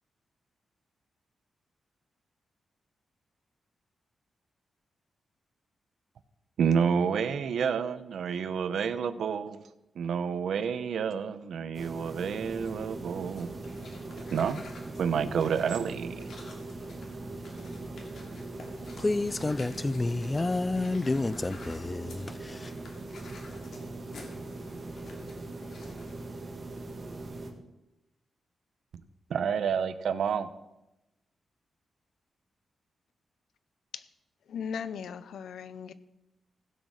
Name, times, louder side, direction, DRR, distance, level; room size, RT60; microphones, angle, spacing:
voice 1, 6.6-9.6 10.0-13.5 14.1-14.6 15.0-16.3 29.3-30.5, right 7 dB, 80° right, 0.7 m, -29 dB
sound 1, 11.7-27.5, right 2 dB, 35° right, 1.8 m, -41 dB
sound 2, 13.2-26.3, left 3 dB, 70° left, 2.6 m, -52 dB
voice 2, 19.0-22.7, left 2 dB, 20° left, 0.3 m, -30 dB
voice 3, 34.5-35.9, left 7 dB, 90° left, 0.6 m, -37 dB
16.0 x 6.5 x 6.3 m
wide cardioid pair, 110°, 0 cm